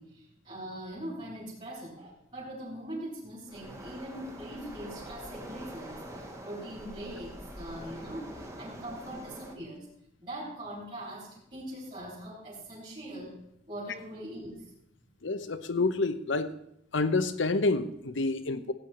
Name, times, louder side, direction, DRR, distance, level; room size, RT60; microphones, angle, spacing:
voice 1, 0.0-9.9 10.2-13.3 13.7-14.7, right 1 dB, 35° right, 4.1 m, -42 dB
Waves surf, 3.5-9.6, right 1 dB, 15° right, 1.5 m, -44 dB
voice 2, 15.2-16.6 16.9-18.7, left 3 dB, 70° left, 0.9 m, -28 dB
16.5 x 9.0 x 4.4 m
head